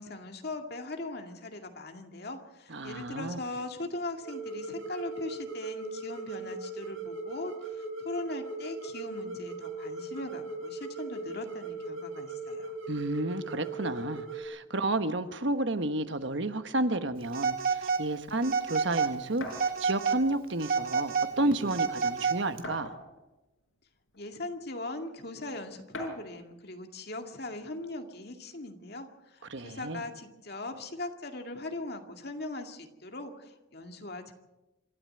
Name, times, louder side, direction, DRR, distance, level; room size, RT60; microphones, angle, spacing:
voice 1, 0.0-12.8 24.2-34.3, left 2 dB, 50° left, 5 dB, 2.3 m, -40 dB
voice 2, 2.7-3.4 12.9-22.9 29.5-30.0, right 2 dB, 65° right, 10 dB, 1.2 m, -31 dB
sound 1, 4.2-14.4, right 3 dB, 80° right, 6.0 m, -39 dB
Telephone, 17.3-18.1 18.4-19.1 19.5-20.2 20.6-22.6, right 5 dB, 45° right, 1.8 m, -29 dB
sound 2, 19.4-19.7 20.8-20.9 21.3-21.4 22.6-23.3 24.1-24.2 25.9-26.3, left 1 dB, 85° left, 6.3 m, -40 dB
27.0 x 13.0 x 7.8 m, 0.97 s
head